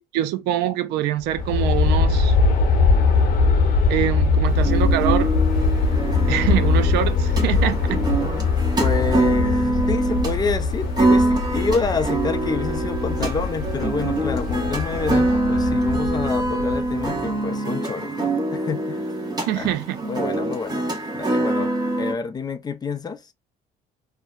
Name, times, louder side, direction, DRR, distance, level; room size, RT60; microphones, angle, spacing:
voice 1, 0.0-2.3 3.9-5.3 6.3-8.0 19.5-20.0, right 12 dB, 85° right, 0.4 m, -24 dB
Aircraft, 1.2-17.3, left 4 dB, 60° left, 0.8 m, -21 dB
sound 1, 4.6-22.1, right 2 dB, 25° right, 0.9 m, -24 dB
voice 2, 8.8-19.1 19.5-19.8 20.1-21.7 22.0-23.3, left 5 dB, 25° left, 0.4 m, -28 dB
Wind instrument woodwind instrument, 12.1-16.1, left 5 dB, 90° left, 0.8 m, -39 dB
2.6 x 2.0 x 2.3 m
cardioid pair, 110°, 17 cm